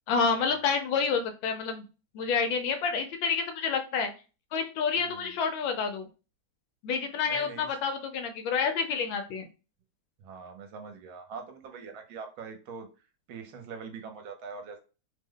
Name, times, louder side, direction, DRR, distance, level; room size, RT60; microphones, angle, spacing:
voice 1, 0.1-1.8 2.1-4.1 4.5-6.1 6.8-9.5, left 5 dB, 75° left, 6 dB, 1.3 m, -28 dB
voice 2, 7.3-7.7 10.2-12.9 13.3-14.8, right 5 dB, 75° right, 5 dB, 1.4 m, -43 dB
3.3 x 2.1 x 3.6 m, 0.32 s
omnidirectional pair, 2.2 m